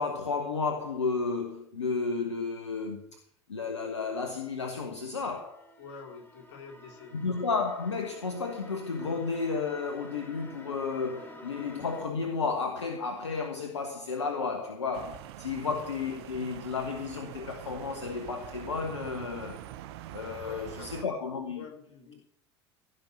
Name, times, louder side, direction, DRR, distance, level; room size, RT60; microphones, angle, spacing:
voice 1, 0.0-3.1 3.5-5.6 7.1-19.6 20.1-21.6, left 4 dB, 80° left, 1.3 m, -32 dB
sound 1, 4.5-12.1, equal, 15° left, 2.9 m, -51 dB
voice 2, 5.8-7.1 15.5-15.7 20.4-21.1 21.6-22.2, left 5 dB, 60° left, 3.6 m, -47 dB
sound 2, 14.9-21.0, right 12 dB, 60° right, 1.0 m, -44 dB
16.0 x 5.6 x 8.1 m
figure-of-eight pair, 70°, 15 cm